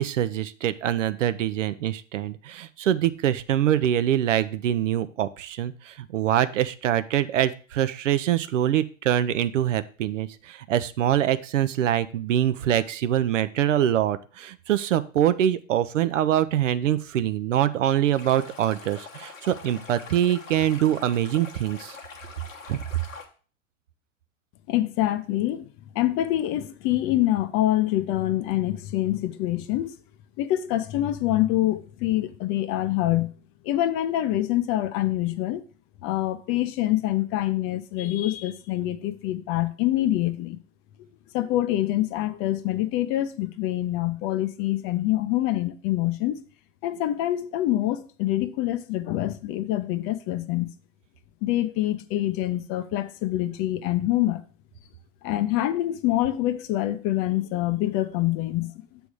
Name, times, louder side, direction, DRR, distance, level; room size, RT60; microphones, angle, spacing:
voice 1, 0.0-22.0 22.7-22.8, right 11 dB, 70° right, 0.6 m, -24 dB
Stream, 18.1-23.2, left 5 dB, 85° left, 1.3 m, -44 dB
voice 2, 24.7-25.7 25.9-30.0 30.4-33.3 33.6-35.7 36.0-40.6 41.3-46.4 46.8-50.7 51.4-54.4 55.2-59.0, left 14 dB, 35° left, 0.6 m, -25 dB
7.0 x 3.5 x 6.1 m
hypercardioid pair, 100°, 38 cm